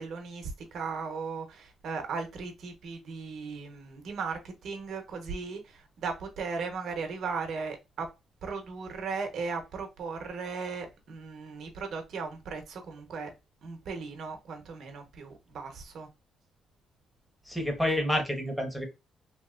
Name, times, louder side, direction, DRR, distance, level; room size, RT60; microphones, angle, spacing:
voice 1, 0.0-8.1 8.4-13.3 13.6-16.1, right 4 dB, 65° right, 0.8 m, -37 dB
voice 2, 17.5-18.9, left 1 dB, 5° left, 1.0 m, -29 dB
2.8 x 2.8 x 2.3 m
cardioid pair, 90°, 0 cm